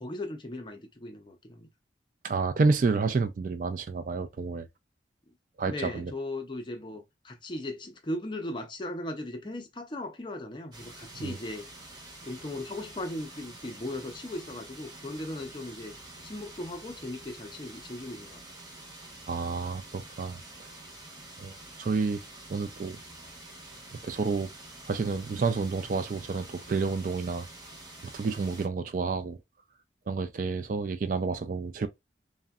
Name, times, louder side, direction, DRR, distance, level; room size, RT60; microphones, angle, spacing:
voice 1, 0.0-1.7 5.7-11.7 12.2-16.0 16.2-18.4, left 1 dB, 25° left, 0.5 m, -38 dB
voice 2, 2.2-4.7 5.6-6.1 11.2-11.4 19.3-20.4 21.4-22.2 22.5-23.0 24.0-24.5 24.9-27.5 28.0-29.4 30.1-31.9, right 4 dB, 45° right, 0.3 m, -29 dB
sound 1, 10.7-28.7, right 2 dB, 25° right, 0.8 m, -47 dB
3.6 x 2.1 x 2.2 m
head